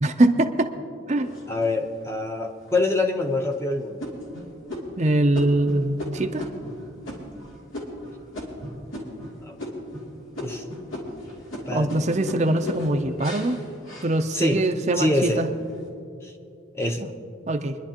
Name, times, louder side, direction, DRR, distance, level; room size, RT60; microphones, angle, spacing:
voice 1, 0.0-0.7 1.1-1.3 5.0-6.5 11.7-13.6 14.0-15.5 17.5-17.8, right 1 dB, 35° right, 6 dB, 0.5 m, -22 dB
sound 1, 1.2-2.0 2.6-2.7 3.2-3.5 4.0-9.3 9.6-10.1 10.3-14.7 15.1-15.7, left 1 dB, 80° left, 2.8 m, -36 dB
voice 2, 1.5-4.1 9.4-9.5 10.4-10.6 11.7-11.9 14.3-14.6 15.0-15.4 16.2-16.3 16.7-17.1, left 2 dB, 15° left, 3 dB, 0.8 m, -25 dB
26.0 x 11.0 x 2.9 m, 2.5 s
head